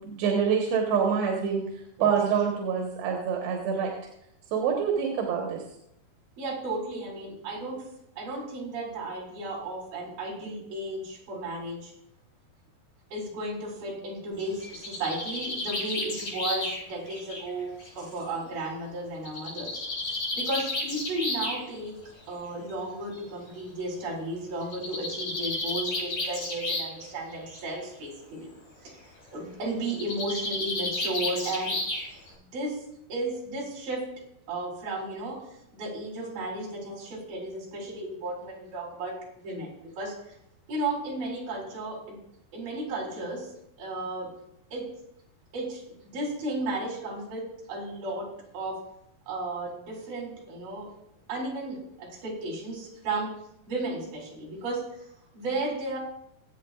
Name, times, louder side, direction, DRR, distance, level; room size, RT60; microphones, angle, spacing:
voice 1, 0.0-1.6 2.0-3.9 4.5-5.6, right 7 dB, 85° right, 0 dB, 3.5 m, -26 dB
voice 2, 6.4-7.8 8.2-11.9 13.1-17.7 18.0-19.8 20.3-22.0 22.3-28.5 28.8-29.0 29.3-31.8 32.4-32.8 33.1-34.0 34.5-35.4 35.7-40.4 40.7-42.2 42.5-43.5 43.8-44.3 44.7-44.8 45.5-48.3 48.5-48.8 49.3-50.9 51.3-53.3 53.7-55.1 55.3-56.0, right 2 dB, 65° right, -2 dB, 5.5 m, -34 dB
Bird, 14.4-18.2 19.3-21.6 22.7-22.8 23.1-23.2 23.5-23.6 24.6-27.0 27.3-27.8 29.9-32.3, left 2 dB, 60° left, 7.6 m, -32 dB
24.0 x 8.8 x 2.5 m, 0.78 s
omnidirectional pair, 4.7 m